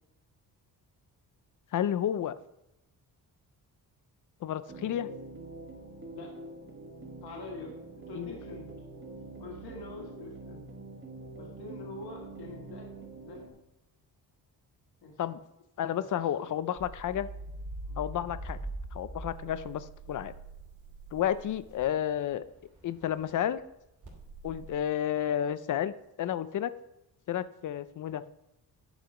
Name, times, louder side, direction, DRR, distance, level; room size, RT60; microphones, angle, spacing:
voice 1, 1.7-2.3 4.4-5.1 8.1-8.3 15.2-15.4 15.8-17.3 18.0-18.6 18.9-20.3 21.1-22.4 22.8-23.6 24.4-26.7 27.3-28.2, left 10 dB, 55° left, 14 dB, 0.5 m, -31 dB
sound 1, 4.7-13.5, right 3 dB, 30° right, 1.5 m, -45 dB
voice 2, 7.2-8.8 9.4-10.7 11.4-13.5 15.0-15.2 15.9-16.5 17.8-18.0, left 3 dB, 80° left, 0 dB, 1.8 m, -46 dB
sound 2, 16.8-23.4 24.0-24.7, right 2 dB, 50° right, 2.7 m, -43 dB
10.5 x 4.9 x 5.0 m, 0.88 s
wide cardioid pair, 155°, 37 cm